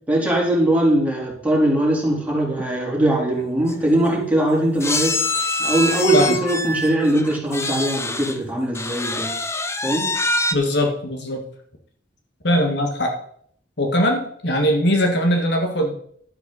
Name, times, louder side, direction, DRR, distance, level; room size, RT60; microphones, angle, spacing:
voice 1, 0.1-5.2 5.6-9.4 9.8-10.1, right 1 dB, 10° right, -4 dB, 3.7 m, -20 dB
sound 1, 3.4-3.5 3.7-3.9 4.8-8.4 8.7-10.5, left 2 dB, 15° left, 0.7 m, -25 dB
voice 2, 10.5-11.4 12.4-13.2 13.8-15.9, equal, 65° left, 3 dB, 1.8 m, -20 dB
12.0 x 10.5 x 4.1 m, 0.63 s
head